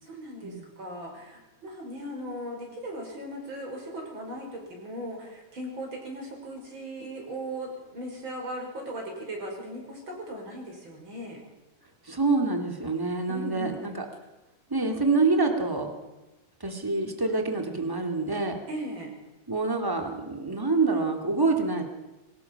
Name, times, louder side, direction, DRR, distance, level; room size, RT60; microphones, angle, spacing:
voice 1, 0.0-11.4 13.3-14.0 18.7-19.1, equal, 35° right, 1 dB, 6.1 m, -38 dB
voice 2, 12.0-14.0 14.7-15.9 16.6-18.6 19.5-21.8, right 3 dB, 10° right, 4 dB, 2.0 m, -26 dB
22.5 x 19.5 x 5.9 m, 1.1 s
omnidirectional pair, 3.8 m